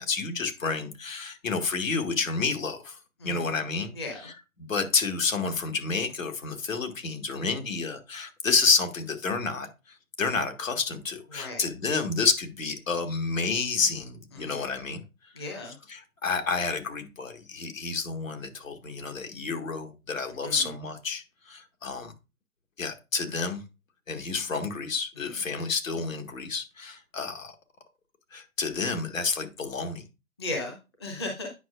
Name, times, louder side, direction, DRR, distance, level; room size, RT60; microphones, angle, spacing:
voice 1, 0.0-3.0 3.2-3.9 4.2-4.3 4.6-9.7 10.2-15.0 15.7-22.1 22.8-23.6 24.1-27.5 28.3-30.0, left 4 dB, 65° left, 1.8 m, -29 dB
voice 2, 3.9-4.3 11.3-11.6 14.3-14.6 15.4-15.7 20.4-20.7 25.2-25.4 30.4-30.7 31.0-31.5, left 2 dB, 20° left, 0.8 m, -36 dB
9.3 x 5.7 x 2.5 m
hypercardioid pair, 165°, 43 cm